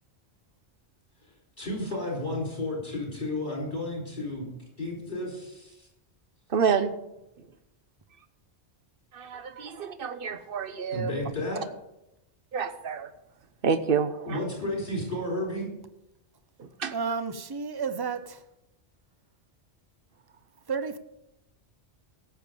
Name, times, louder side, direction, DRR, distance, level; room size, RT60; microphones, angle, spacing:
voice 1, 1.6-4.5 4.8-5.9 10.9-11.6 14.2-15.7, left 1 dB, 45° left, -2 dB, 4.6 m, -32 dB
voice 2, 6.5-6.9 9.1-11.1 12.5-13.1 13.6-14.4 16.6-16.9, right 6 dB, 55° right, 11 dB, 1.0 m, -28 dB
voice 3, 16.9-18.4 20.7-21.0, right 5 dB, 25° right, 11 dB, 0.6 m, -31 dB
17.0 x 7.0 x 5.2 m, 0.89 s
omnidirectional pair, 1.1 m